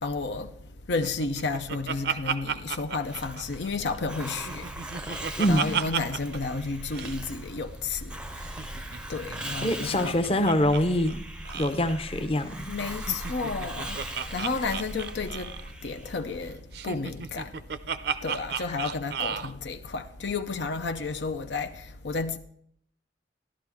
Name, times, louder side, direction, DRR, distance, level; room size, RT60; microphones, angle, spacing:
voice 1, 0.0-4.8 5.2-8.6 9.1-10.3 12.7-17.6 18.2-22.4, left 4 dB, 75° left, 0.6 m, -32 dB
Laughter, 1.0-3.9 4.3-6.4 6.6-6.7 6.9-7.2 8.4-10.8 11.1-11.2 11.4-11.8 12.9-15.7 16.7-19.5, right 7 dB, 60° right, 0.5 m, -34 dB
Hiss, 3.0-16.5, right 1 dB, 5° right, 0.5 m, -40 dB
voice 2, 5.4-5.8 9.6-11.3 11.5-12.8 14.6-14.7 18.7-18.8, left 1 dB, 30° left, 0.7 m, -25 dB
13.5 x 11.5 x 3.6 m
head